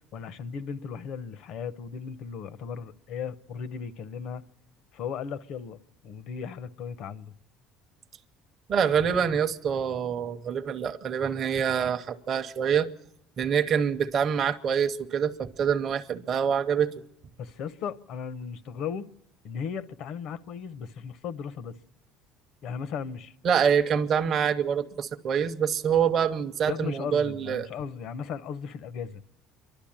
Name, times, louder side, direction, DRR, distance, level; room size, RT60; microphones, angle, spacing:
voice 1, 0.1-4.4 4.9-7.3 17.4-19.1 19.4-21.8 22.6-23.3 26.7-29.2, left 6 dB, 50° left, 0.7 m, -36 dB
voice 2, 8.7-12.9 13.4-16.9 23.4-27.7, right 7 dB, 35° right, 0.7 m, -26 dB
28.0 x 12.0 x 8.7 m
cardioid pair, 165°, 0 cm